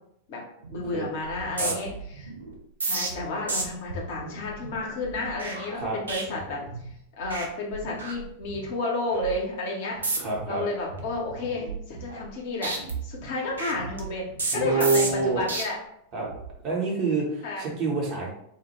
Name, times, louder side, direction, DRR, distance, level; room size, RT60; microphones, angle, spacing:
sound 1, 0.6-0.9 1.2-6.9 7.2-7.5 7.7-8.7 9.1-9.4 9.9-10.5 10.9-12.4 12.6-15.6 16.2-16.5, right 3 dB, 70° right, 0.4 m, -33 dB
voice 1, 0.7-2.3 2.9-6.6 7.2-12.8 13.0-15.8 17.4-17.6, left 2 dB, 50° left, -2 dB, 0.6 m, -31 dB
voice 2, 10.2-10.6 14.5-15.4 16.1-16.3 16.6-18.3, right 3 dB, 35° right, -3 dB, 0.8 m, -26 dB
2.0 x 2.0 x 2.9 m, 0.74 s
figure-of-eight pair, 90°, 0 cm